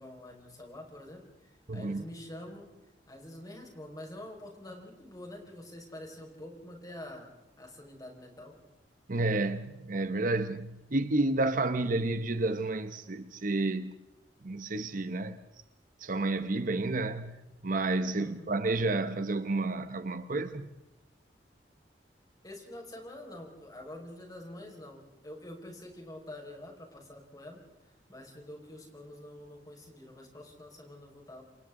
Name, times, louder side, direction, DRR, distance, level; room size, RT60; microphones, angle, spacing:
voice 1, 0.0-2.7 3.1-7.3 7.6-8.5 18.2-18.5 22.4-31.4, left 1 dB, 20° left, 5.2 m, -46 dB
voice 2, 1.7-2.0 9.1-13.9 14.4-15.4 16.0-20.7, right 2 dB, 50° right, 0.9 m, -30 dB
28.5 x 27.5 x 3.8 m
head